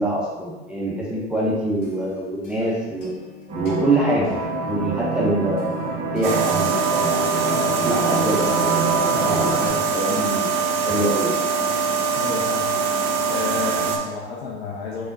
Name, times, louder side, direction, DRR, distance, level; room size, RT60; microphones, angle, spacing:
voice 1, 0.0-3.1 3.5-4.4 4.7-5.8 6.1-7.3 7.8-8.9 9.2-10.6 10.9-11.4, right 1 dB, 5° right, -6 dB, 0.6 m, -24 dB
sound 1, 1.5-11.1, left 5 dB, 50° left, 1.2 m, -43 dB
sound 2, 3.5-9.7, right 3 dB, 20° right, 1.0 m, -26 dB
sound 3, 6.2-14.0, right 5 dB, 45° right, 0.6 m, -23 dB
voice 2, 7.4-7.9 12.1-12.8 13.2-15.1, left 5 dB, 65° left, -3 dB, 0.7 m, -31 dB
3.5 x 3.5 x 2.6 m, 1.1 s
hypercardioid pair, 95°, 34 cm